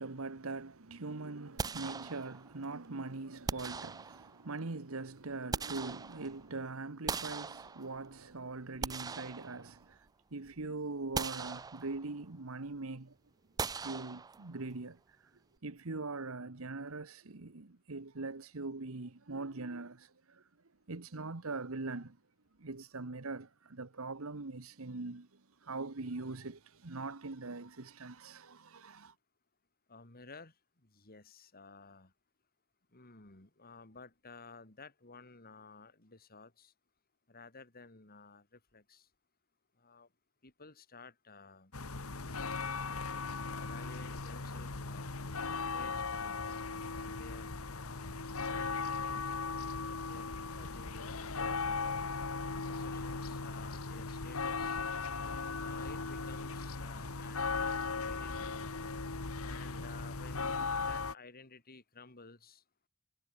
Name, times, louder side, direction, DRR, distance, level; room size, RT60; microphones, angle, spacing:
voice 1, 0.0-13.1 13.7-15.2 15.6-20.4 20.9-22.2 22.6-29.1, right 3 dB, 70° right, 1.3 m, -42 dB
sound 1, 1.6-2.6 3.5-4.5 5.2-6.5 7.1-8.2 8.6-10.1 10.5-10.6 11.1-12.2 13.6-14.7, right 5 dB, 15° right, 0.3 m, -40 dB
voice 2, 29.9-30.5 30.8-32.1 32.9-36.7 37.3-39.1 39.8-40.1 40.4-41.7 43.5-45.1 45.7-46.7 46.9-49.3 50.1-52.1 52.7-54.8 55.6-58.7 59.4-62.6, left 4 dB, 45° left, 3.4 m, -54 dB
sound 2, 41.7-61.1, left 4 dB, 75° left, 1.8 m, -38 dB
head